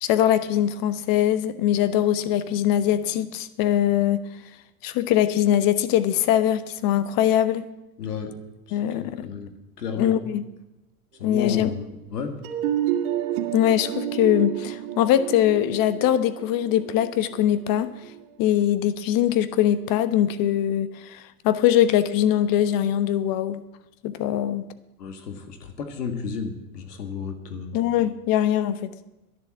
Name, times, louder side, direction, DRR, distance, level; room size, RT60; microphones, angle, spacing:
voice 1, 0.0-4.2 4.8-7.7 8.7-9.3 10.0-10.4 11.2-11.7 13.5-17.9 18.4-23.6 24.0-24.7 27.7-28.9, left 11 dB, 45° left, 13 dB, 1.1 m, -22 dB
voice 2, 8.0-8.4 8.7-9.5 9.8-10.2 11.2-12.4 25.0-27.8, left 5 dB, 90° left, 6 dB, 1.9 m, -32 dB
sound 1, 12.4-18.2, right 11 dB, 65° right, 2.0 m, -30 dB
11.0 x 11.0 x 7.4 m, 0.96 s
hypercardioid pair, 100°, 46 cm